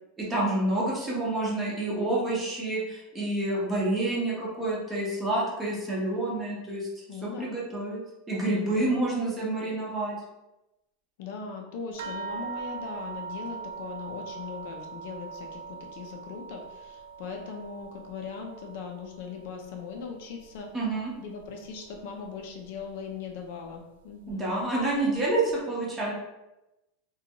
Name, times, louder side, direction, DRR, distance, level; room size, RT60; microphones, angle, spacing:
voice 1, 0.2-6.9 7.2-8.0 8.3-10.1 20.7-21.1 24.3-26.1, right 2 dB, 15° right, -5 dB, 0.6 m, -28 dB
voice 2, 7.1-7.5 8.7-9.2 11.2-20.7 21.2-24.5, left 5 dB, 55° left, 2 dB, 0.4 m, -39 dB
sound 1, 12.0-20.8 21.1-22.0 22.8-22.9 23.3-23.4, right 5 dB, 80° right, 0.3 m, -41 dB
2.5 x 2.2 x 2.8 m, 0.96 s
supercardioid pair, 170°, 0 cm